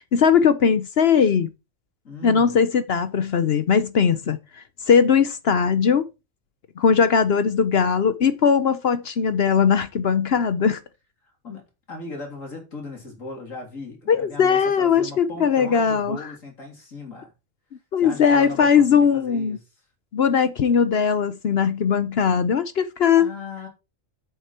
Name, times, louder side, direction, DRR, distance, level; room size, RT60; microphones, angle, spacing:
voice 1, 0.0-1.5 2.2-6.0 6.8-10.8 14.1-16.3 17.9-19.6 20.1-23.3, left 6 dB, 55° left, 0.9 m, -19 dB
voice 2, 2.0-2.7 11.4-17.3 18.0-19.6 23.2-23.7, left 3 dB, 80° left, 3.7 m, -37 dB
8.7 x 7.3 x 4.4 m
omnidirectional pair, 1.4 m